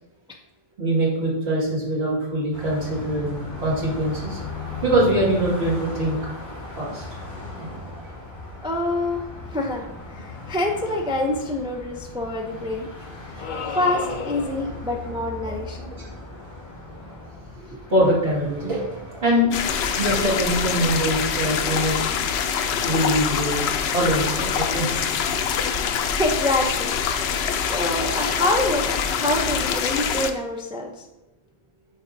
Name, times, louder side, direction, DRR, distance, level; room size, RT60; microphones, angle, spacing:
voice 1, 0.8-4.4 4.8-6.2 6.8-7.0 7.6-7.8 14.6-14.7 15.5-15.6 15.8-15.9 17.9-19.5 20.0-22.1 22.8-25.2 28.1-28.4, right 1 dB, 80° right, -5 dB, 2.2 m, -23 dB
Car passing by, 2.5-19.7, left 2 dB, 25° left, 2.0 m, -37 dB
voice 2, 8.6-9.2 9.5-12.9 13.3-15.8 17.6-17.8 26.1-31.0, left 1 dB, 5° right, 1 dB, 0.4 m, -26 dB
sound 1, 13.4-14.8, left 5 dB, 55° left, 0.7 m, -32 dB
sound 2, 19.5-30.3, left 7 dB, 85° left, 0.8 m, -25 dB
7.8 x 4.7 x 2.6 m, 0.94 s
omnidirectional pair, 1.1 m